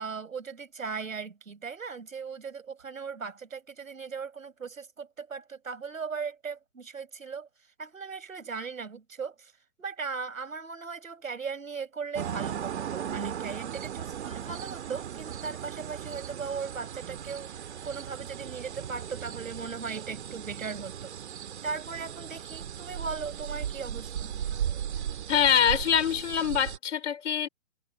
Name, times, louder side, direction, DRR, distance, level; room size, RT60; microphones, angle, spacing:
voice 1, 0.0-7.5 7.8-9.5 9.8-21.2 21.6-24.3, right 5 dB, 80° right, 5.8 m, -38 dB
sound 1, 12.2-26.8, right 9 dB, 55° right, 2.3 m, -37 dB
voice 2, 25.3-27.5, left 9 dB, 60° left, 5.1 m, -24 dB
hypercardioid pair, 140°, 40 cm